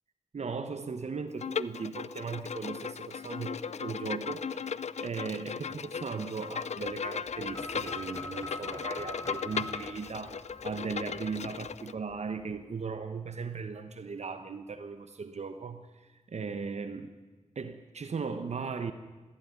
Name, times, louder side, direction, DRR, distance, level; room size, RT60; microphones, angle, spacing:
voice 1, 0.3-15.9 16.3-17.1 17.5-18.9, right 5 dB, 75° right, 9 dB, 1.1 m, -37 dB
Bowed string instrument, 1.4-11.9, left 6 dB, 80° left, 0.6 m, -37 dB
sound 1, 7.2-12.8, equal, 25° right, 6.4 m, -60 dB
sound 2, 7.5-11.4, left 2 dB, 30° left, 5.0 m, -44 dB
21.5 x 15.5 x 9.7 m, 1.3 s
cardioid pair, 55°, 11 cm